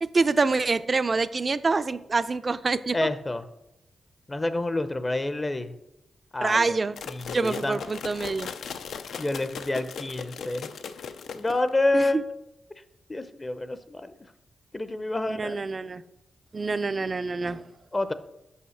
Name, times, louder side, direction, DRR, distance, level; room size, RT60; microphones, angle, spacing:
voice 1, 0.0-3.0 6.4-7.0 7.3-8.5 11.9-12.2 15.3-16.0 16.5-17.6, right 3 dB, 40° right, 14 dB, 0.4 m, -26 dB
voice 2, 2.9-3.4 4.3-5.7 6.3-6.8 7.1-7.8 9.2-10.7 11.3-12.2 13.1-14.1 14.7-15.6 17.9-18.1, left 2 dB, 25° left, 11 dB, 0.6 m, -28 dB
sound 1, 7.0-11.8, left 6 dB, 80° left, 0.4 m, -38 dB
5.6 x 5.3 x 6.4 m, 0.92 s
cardioid pair, 70°, 0 cm